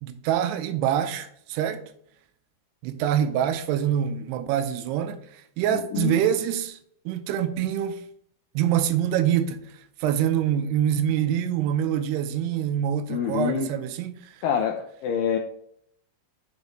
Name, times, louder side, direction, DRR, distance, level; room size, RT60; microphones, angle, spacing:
voice 1, 0.0-1.8 2.8-6.8 7.1-8.0 8.6-9.6 10.0-14.1, right 10 dB, 85° right, 2.7 m, -25 dB
voice 2, 5.7-6.2 13.1-13.7 14.4-15.4, left 7 dB, 85° left, 2.0 m, -26 dB
8.3 x 5.1 x 3.1 m
omnidirectional pair, 4.7 m